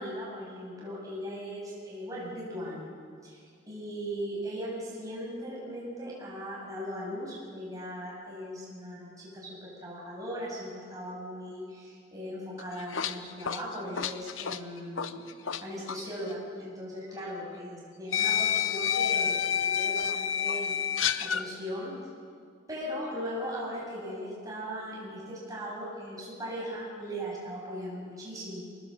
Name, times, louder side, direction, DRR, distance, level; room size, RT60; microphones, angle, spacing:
voice 1, 0.0-2.9 3.2-3.4 3.7-15.2 15.6-20.8 21.2-21.9 22.7-28.7, equal, 15° right, -5 dB, 7.5 m, -38 dB
sound 1, 12.6-15.6 15.9-16.1 17.2-17.3 18.1-21.5, left 8 dB, 85° left, 0.8 m, -29 dB
25.0 x 19.5 x 7.7 m, 2.1 s
head